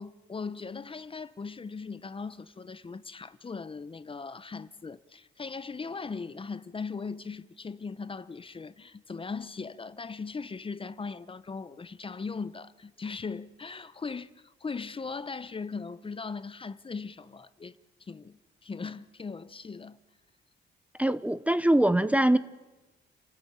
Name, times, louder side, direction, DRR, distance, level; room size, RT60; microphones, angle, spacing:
voice 1, 0.0-20.0, left 4 dB, 25° left, 0.8 m, -39 dB
voice 2, 21.0-22.4, right 1 dB, 5° right, 0.8 m, -23 dB
29.5 x 14.5 x 8.8 m
cardioid pair, 90°, 20 cm